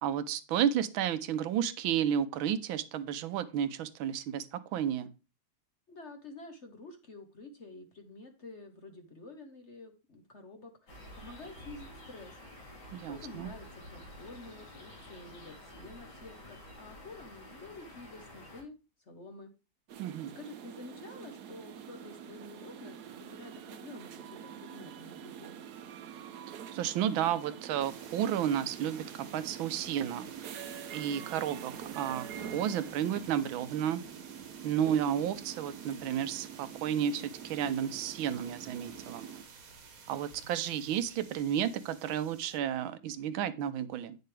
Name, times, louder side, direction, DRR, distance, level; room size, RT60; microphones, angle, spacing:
voice 1, 0.0-5.1 12.9-13.5 20.0-20.3 26.7-30.7 30.9-32.3 32.5-34.0 34.6-39.3 40.1-44.2, right 9 dB, 80° right, 1.5 m, -32 dB
voice 2, 5.9-12.4 13.0-19.5 20.0-25.6, left 2 dB, 45° left, 1.1 m, -49 dB
sound 1, 10.9-18.6, left 1 dB, 75° left, 3.3 m, -50 dB
sound 2, 19.9-39.4, right 8 dB, 65° right, 1.1 m, -46 dB
sound 3, 27.8-42.6, right 5 dB, 50° right, 1.5 m, -53 dB
9.3 x 6.7 x 3.3 m
omnidirectional pair, 2.2 m